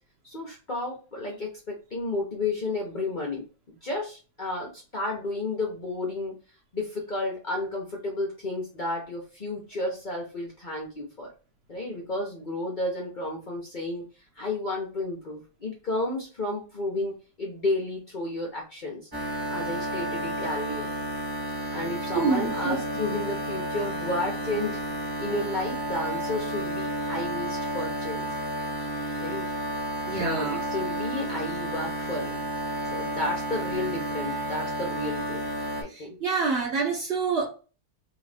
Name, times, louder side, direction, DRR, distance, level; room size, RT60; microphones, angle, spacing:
voice 1, 0.2-6.4 6.7-11.3 11.7-14.1 14.4-19.0 19.5-20.9 21.7-24.8 25.2-28.3 29.2-29.5 30.2-32.4 32.9-35.4 35.8-36.2, left 2 dB, 70° left, -1 dB, 0.4 m, -32 dB
sound 1, 19.1-35.8, right 1 dB, 20° right, 0.7 m, -31 dB
voice 2, 22.1-22.8 30.1-30.6 35.9-37.5, right 4 dB, 65° right, -1 dB, 0.6 m, -27 dB
3.1 x 2.8 x 3.3 m, 0.34 s
omnidirectional pair, 2.1 m